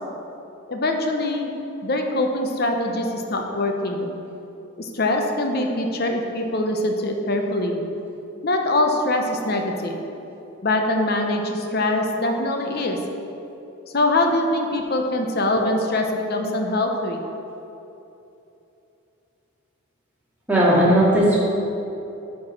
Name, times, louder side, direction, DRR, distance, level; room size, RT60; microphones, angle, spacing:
voice 1, 0.7-1.5 1.8-4.1 4.8-7.8 8.4-10.0 10.6-13.0 13.9-17.2, left 1 dB, 45° left, 3 dB, 0.8 m, -23 dB
voice 2, 20.5-21.4, right 1 dB, 10° right, -8 dB, 2.0 m, -16 dB
8.5 x 4.7 x 6.4 m, 2.9 s
head